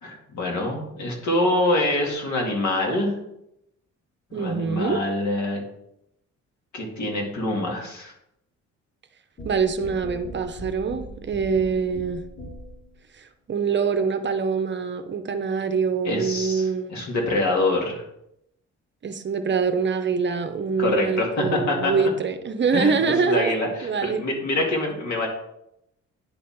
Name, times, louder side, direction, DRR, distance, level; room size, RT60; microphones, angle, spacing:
voice 1, 0.0-3.1 4.3-5.6 6.7-8.1 16.0-18.0 20.8-22.1 22.7-25.3, left 2 dB, 65° left, 0 dB, 2.2 m, -25 dB
voice 2, 4.3-5.0 9.4-12.2 13.2-17.1 19.0-23.5 23.8-24.2, right 5 dB, 40° right, 8 dB, 0.7 m, -24 dB
sound 1, 9.4-12.9, equal, 40° left, 1.6 m, -39 dB
9.6 x 3.5 x 4.4 m, 0.80 s
cardioid pair, 90°, 30 cm